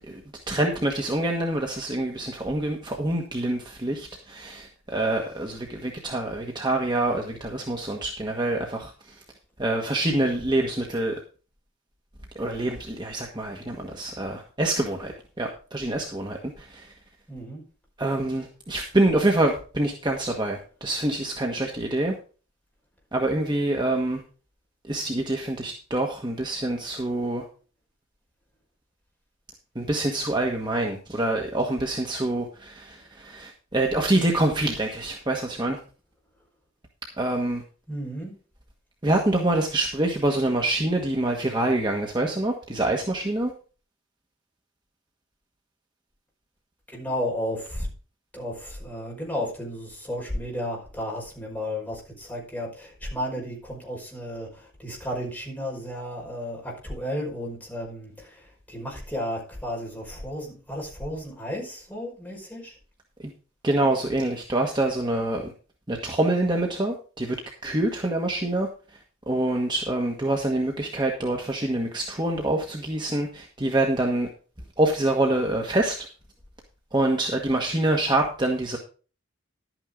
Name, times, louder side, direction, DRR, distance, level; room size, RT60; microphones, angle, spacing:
voice 1, 0.5-9.1 9.6-11.2 12.3-16.9 18.0-22.1 23.1-24.2 24.9-27.4 29.7-35.8 37.2-37.6 39.0-43.5 63.6-65.5 65.9-67.4 67.6-68.7 69.3-74.3 74.8-76.0 76.9-78.8, right 1 dB, 25° right, 1 dB, 1.4 m, -26 dB
voice 2, 17.3-17.6 37.9-38.4 46.9-47.9 48.3-62.8, equal, 10° left, -2 dB, 5.4 m, -33 dB
12.0 x 9.2 x 3.8 m, 0.37 s
head